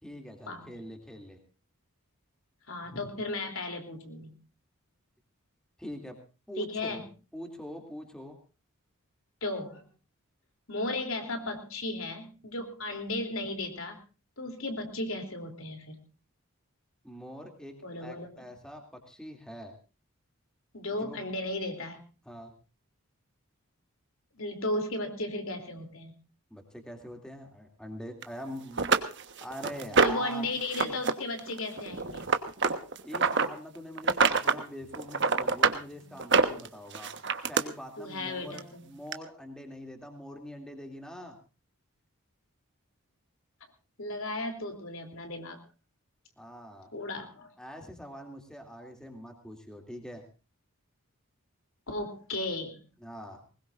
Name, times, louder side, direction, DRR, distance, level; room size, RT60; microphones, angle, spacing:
voice 1, 0.0-1.4 5.8-6.2 6.5-7.1 7.3-8.4 17.0-19.7 21.0-21.2 22.2-22.5 26.5-28.9 29.4-30.5 30.7-30.9 33.0-37.1 37.5-41.4 46.4-46.9 47.6-50.2 53.0-53.5, equal, 5° left, 3 dB, 2.6 m, -44 dB
voice 2, 2.7-4.4 6.6-7.0 9.4-9.9 10.7-14.0 14.4-16.0 17.8-18.5 20.7-22.1 24.3-26.1 30.0-32.3 38.0-38.9 44.0-45.6 46.9-47.5 51.9-52.8, left 2 dB, 70° left, 5 dB, 3.2 m, -35 dB
sound 1, 28.2-28.3 28.8-30.3 30.7-31.1 31.4-33.5 34.0-34.6 34.9-35.8 36.2-37.6 38.6-38.7 39.1-39.2, right 4 dB, 50° right, 1.3 m, -25 dB
21.5 x 20.5 x 2.6 m, 0.33 s
head